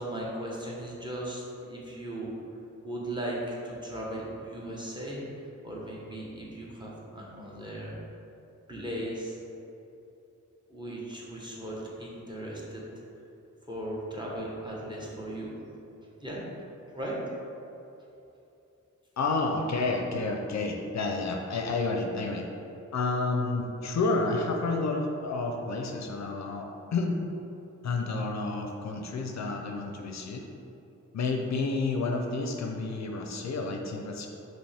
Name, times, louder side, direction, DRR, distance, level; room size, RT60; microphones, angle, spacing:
voice 1, 0.0-2.3 2.8-3.4 3.6-5.3 5.6-7.9 8.7-9.4 10.7-12.8 13.7-15.5 16.2-16.4 16.9-17.2, right 1 dB, 15° right, -5 dB, 1.1 m, -37 dB
voice 2, 19.2-22.5 22.9-27.2 27.8-30.4 31.1-34.3, left 3 dB, 60° left, 2 dB, 0.5 m, -30 dB
5.1 x 3.0 x 3.4 m, 2.9 s
cardioid pair, 65°, 31 cm